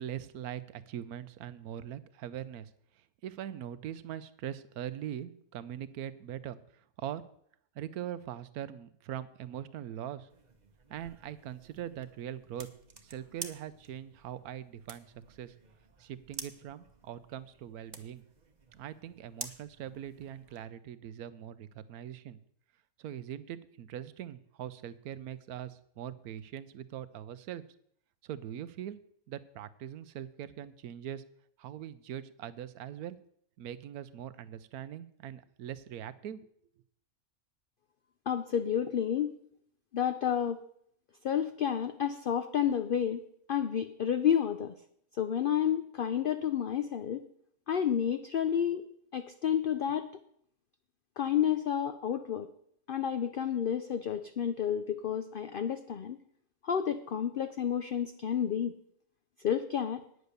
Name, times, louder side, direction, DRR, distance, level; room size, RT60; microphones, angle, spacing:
voice 1, 0.0-2.7 3.2-7.2 7.7-10.3 10.9-12.7 13.0-15.5 16.0-18.2 18.7-22.4 23.0-27.6 28.2-29.0 29.3-31.2 31.6-33.2 33.6-36.4, right 10 dB, 85° right, 15 dB, 1.2 m, -42 dB
sound 1, 10.3-20.7, right 5 dB, 35° right, 0.9 m, -50 dB
voice 2, 38.3-39.3 39.9-40.6 41.2-43.2 43.5-44.7 45.2-47.2 47.7-48.8 49.1-50.1 51.2-52.5 52.9-56.2 56.6-58.8 59.4-60.0, left 9 dB, 60° left, 10 dB, 0.5 m, -30 dB
9.5 x 8.0 x 6.7 m, 0.68 s
omnidirectional pair, 1.5 m